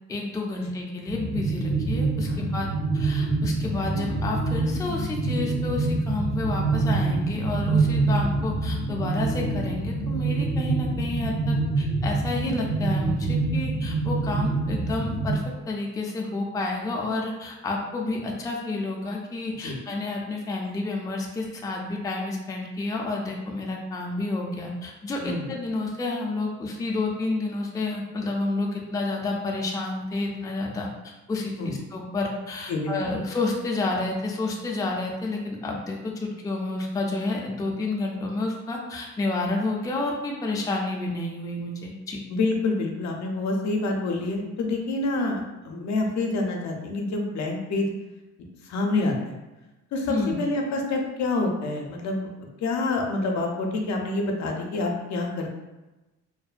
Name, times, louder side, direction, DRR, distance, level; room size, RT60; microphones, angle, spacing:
voice 1, 0.1-42.2 50.1-50.3, left 2 dB, 10° left, -1 dB, 0.3 m, -30 dB
sound 1, 1.1-15.4, right 3 dB, 40° right, 0.7 m, -26 dB
voice 2, 42.3-47.9 48.6-49.3 49.9-52.3 52.6-55.5, left 2 dB, 65° left, 1 dB, 0.5 m, -27 dB
2.6 x 2.1 x 2.4 m, 1.1 s
cardioid pair, 90°, 30 cm